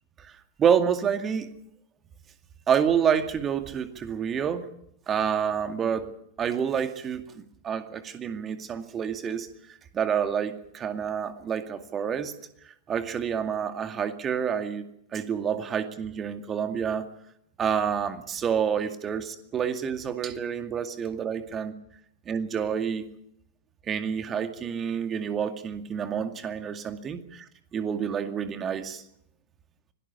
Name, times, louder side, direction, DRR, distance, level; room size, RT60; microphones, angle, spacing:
voice 1, 0.6-1.5 2.7-4.6 5.1-6.1 6.4-12.3 12.7-14.8 15.1-17.1 17.6-21.7 22.3-23.1 23.9-29.0, right 7 dB, 25° right, 8 dB, 2.2 m, -28 dB
25.5 x 17.5 x 7.1 m, 0.76 s
figure-of-eight pair, 90°, 0 cm